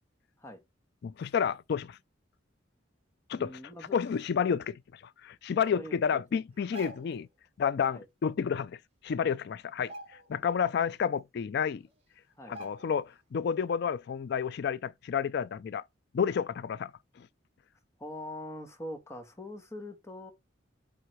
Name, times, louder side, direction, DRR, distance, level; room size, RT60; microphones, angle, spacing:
voice 1, 1.0-2.0 3.3-3.6 3.9-4.8 5.2-7.3 7.6-8.8 9.0-9.9 10.3-11.8 12.5-15.8 16.1-16.9 17.2-17.3, left 7 dB, 60° left, 0.4 m, -30 dB
voice 2, 3.3-4.0 5.7-6.4 7.9-8.0 12.4-12.6 18.0-20.3, left 1 dB, 15° left, 1.4 m, -43 dB
sound 1, 6.5-7.3 8.7-8.8 9.1-9.4 9.8-10.6 11.0-11.1 11.9-12.0 12.5-13.1 13.5-13.7, equal, 35° right, 2.2 m, -47 dB
7.8 x 3.6 x 4.5 m
head